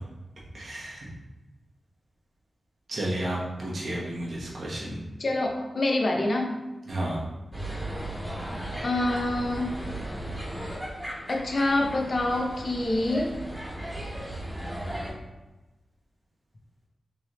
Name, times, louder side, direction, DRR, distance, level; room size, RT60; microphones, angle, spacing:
voice 1, 0.5-1.1 2.9-5.0 6.8-7.2, right 1 dB, 55° right, -5 dB, 1.0 m, -32 dB
voice 2, 5.2-6.5 8.8-9.7 11.3-13.3, left 2 dB, 45° left, 1 dB, 0.6 m, -26 dB
sound 1, 7.5-15.1, right 1 dB, 15° right, 1.3 m, -36 dB
3.8 x 3.2 x 3.0 m, 1.1 s
wide cardioid pair, 140°, 0 cm